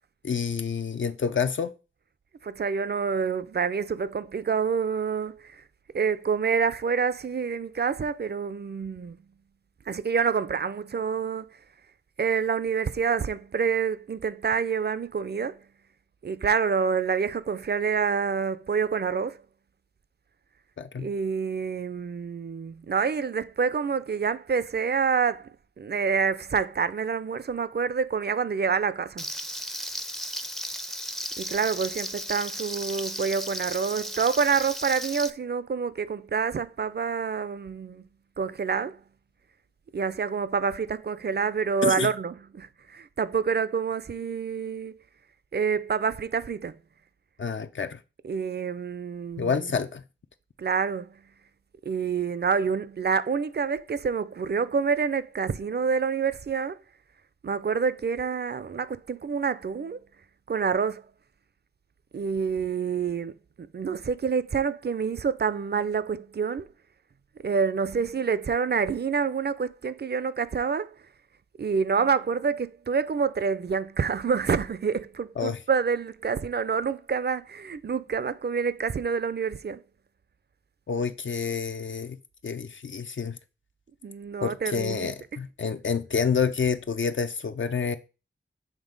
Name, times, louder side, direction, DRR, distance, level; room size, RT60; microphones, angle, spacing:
voice 1, 0.2-1.7 20.8-21.1 41.8-42.1 47.4-48.0 49.4-50.0 75.4-75.6 80.9-82.2 82.4-83.4 84.4-88.0, left 6 dB, 65° left, 0.5 m, -28 dB
voice 2, 2.4-5.6 5.9-9.2 9.9-11.5 12.2-15.6 16.2-19.4 21.0-25.5 25.8-29.2 31.4-38.0 38.4-39.0 39.9-45.0 45.5-46.8 48.2-49.7 50.6-51.1 51.9-56.8 57.4-60.0 60.5-61.0 62.1-66.7 67.4-70.9 71.6-79.8 84.0-85.1, right 6 dB, 50° right, 0.5 m, -27 dB
Frying (food), 29.2-35.3, equal, ahead, 0.5 m, -35 dB
7.4 x 3.2 x 5.1 m
wide cardioid pair, 70°, 21 cm